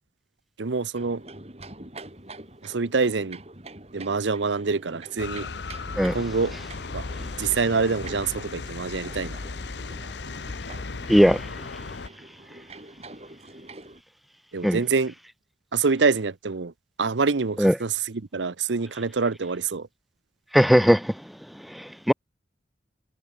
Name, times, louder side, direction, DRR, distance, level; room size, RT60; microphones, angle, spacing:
voice 1, 0.6-1.2 2.6-3.4 3.9-5.5 6.1-6.5 6.9-7.0 7.4-9.4 14.5-15.1 15.7-16.7 17.0-19.9, right 4 dB, 90° right, 0.8 m, -26 dB
sound 1, 0.9-14.0, right 2 dB, 35° right, 3.8 m, -45 dB
sound 2, 5.2-12.1, left 3 dB, 75° left, 0.9 m, -36 dB
voice 2, 11.1-11.5 14.6-14.8 17.6-17.7 20.5-21.2 21.7-22.1, equal, ahead, 0.4 m, -19 dB
head